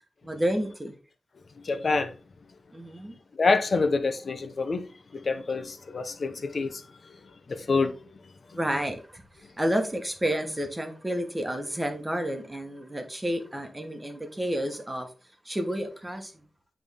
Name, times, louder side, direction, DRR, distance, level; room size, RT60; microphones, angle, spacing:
voice 1, 0.2-0.9 2.7-3.1 8.5-15.1 15.4-16.3, equal, 15° right, 1.3 m, -30 dB
voice 2, 1.6-2.1 3.3-4.9 5.1-8.2, left 4 dB, 50° left, 0.8 m, -27 dB
8.8 x 3.5 x 3.5 m
wide cardioid pair, 110°, 0 cm